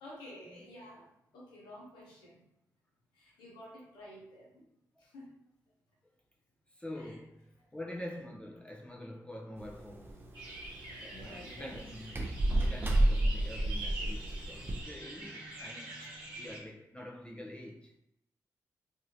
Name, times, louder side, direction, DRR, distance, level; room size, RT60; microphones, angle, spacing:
voice 1, 0.0-2.4 3.1-4.6 5.0-5.4 6.9-7.2 11.1-11.9, left 1 dB, 90° left, 0.8 m, -51 dB
voice 2, 6.7-10.2 11.0-18.0, left 1 dB, 15° left, 0.5 m, -46 dB
sound 1, 9.6-14.8, right 1 dB, 30° right, 0.6 m, -32 dB
sound 2, 10.3-16.6, right 2 dB, 90° right, 0.8 m, -45 dB
2.9 x 2.6 x 2.7 m
supercardioid pair, 45°, 8 cm